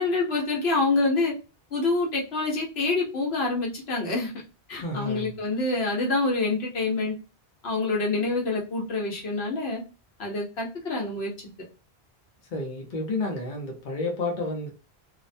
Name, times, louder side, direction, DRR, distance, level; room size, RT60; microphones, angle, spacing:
voice 1, 0.0-1.3 1.7-4.3 4.7-7.1 7.6-9.8 10.2-11.3, left 3 dB, 80° left, -1 dB, 1.1 m, -26 dB
voice 2, 4.7-5.4 12.5-14.7, left 2 dB, 55° left, 0 dB, 0.9 m, -31 dB
2.5 x 2.1 x 2.5 m, 0.32 s
omnidirectional pair, 1.0 m